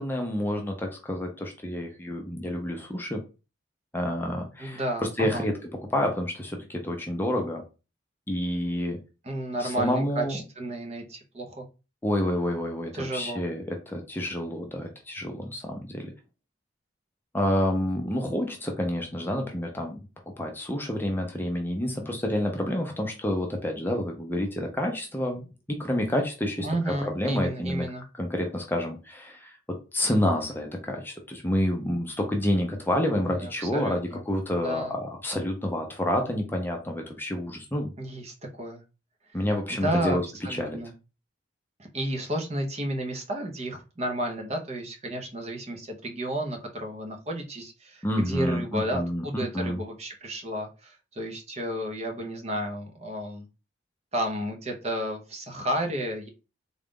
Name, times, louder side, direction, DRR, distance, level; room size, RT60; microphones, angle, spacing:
voice 1, 0.0-3.2 3.9-4.8 5.2-5.5 5.9-7.6 8.3-9.0 9.6-10.4 12.0-16.1 17.3-20.0 20.4-27.9 28.1-29.6 29.9-37.9 39.3-40.2 40.5-40.8 48.0-49.8, left 1 dB, 10° left, 2 dB, 0.6 m, -29 dB
voice 2, 4.6-5.5 9.2-11.7 12.9-13.4 26.6-28.0 33.2-34.2 34.6-34.9 38.0-38.8 39.3-39.4 39.7-40.2 40.4-40.9 41.8-53.5 54.1-56.3, right 1 dB, 35° right, 2 dB, 0.7 m, -32 dB
3.8 x 2.4 x 3.6 m, 0.30 s
head